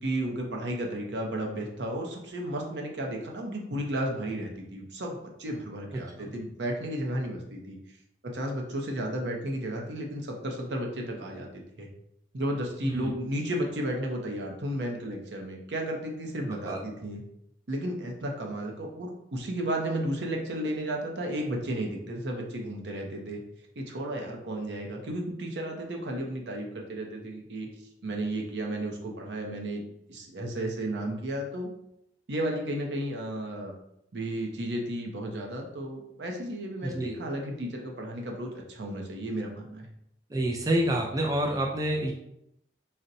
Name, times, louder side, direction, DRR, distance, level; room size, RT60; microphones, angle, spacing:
voice 1, 0.0-7.8 8.2-11.9 12.3-17.2 17.7-23.4 23.8-27.7 28.0-29.8 30.1-31.7 32.3-33.7 34.1-39.9, right 1 dB, 70° right, 1 dB, 0.6 m, -33 dB
voice 2, 5.9-6.3 12.8-13.1 16.5-16.8 36.8-37.2 40.3-42.1, right 1 dB, 20° right, 0 dB, 0.3 m, -28 dB
4.1 x 2.1 x 2.6 m, 0.77 s
head